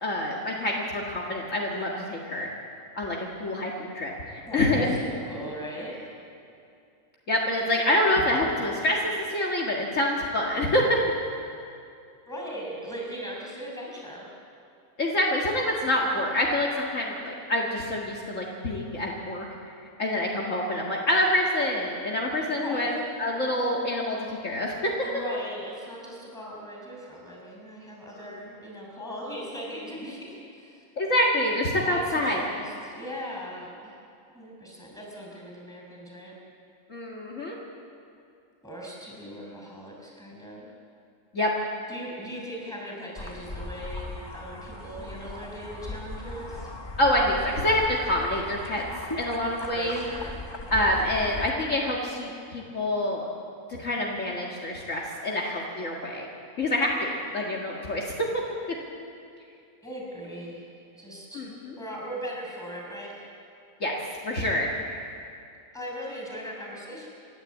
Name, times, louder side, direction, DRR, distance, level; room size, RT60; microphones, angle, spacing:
voice 1, 0.0-2.5 3.0-5.0 7.3-11.0 15.0-19.5 20.0-22.9 23.2-24.9 28.2-28.3 31.0-32.4 36.9-37.6 41.3-41.5 47.0-48.8 49.2-50.0 50.7-53.3 53.8-56.3 56.6-58.4 61.3-61.7 63.8-64.0 64.2-65.0, left 1 dB, 55° left, -2 dB, 2.3 m, -26 dB
voice 2, 4.4-6.1 12.3-14.3 22.6-23.0 25.0-30.8 31.9-34.0 34.3-36.3 38.6-40.7 41.9-46.7 49.7-51.2 59.8-61.5 61.8-63.3 65.7-67.1, equal, ahead, -2 dB, 6.0 m, -39 dB
sound 1, 43.2-51.5, left 2 dB, 20° left, 1.1 m, -38 dB
28.5 x 12.0 x 8.5 m, 2.5 s
omnidirectional pair, 1.6 m